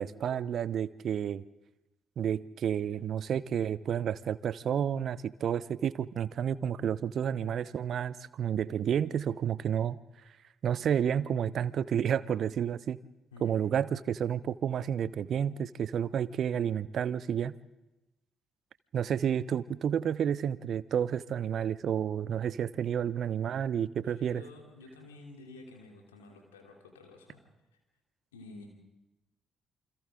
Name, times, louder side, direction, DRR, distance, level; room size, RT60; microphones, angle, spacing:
voice 1, 0.0-1.4 2.2-10.0 10.6-13.0 13.4-17.5 18.9-24.4, right 8 dB, 55° right, 19 dB, 0.7 m, -30 dB
voice 2, 24.1-27.4 27.7-27.8 28.3-28.7, left 3 dB, 85° left, 1 dB, 3.2 m, -51 dB
28.5 x 25.5 x 3.8 m, 1.0 s
figure-of-eight pair, 45°, 0 cm